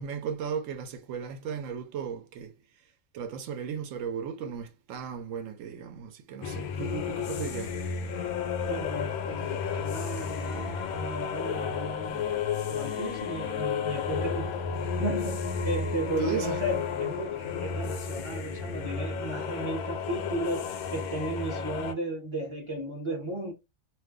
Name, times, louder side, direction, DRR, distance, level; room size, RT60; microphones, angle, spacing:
voice 1, 0.0-2.6 3.1-7.8 16.2-16.6, right 7 dB, 70° right, 1.0 m, -35 dB
sound 1, 6.4-21.9, left 6 dB, 90° left, 1.0 m, -32 dB
voice 2, 8.6-12.4 12.7-14.7 15.0-23.5, right 1 dB, 25° right, 0.8 m, -35 dB
2.5 x 2.2 x 3.5 m
omnidirectional pair, 1.5 m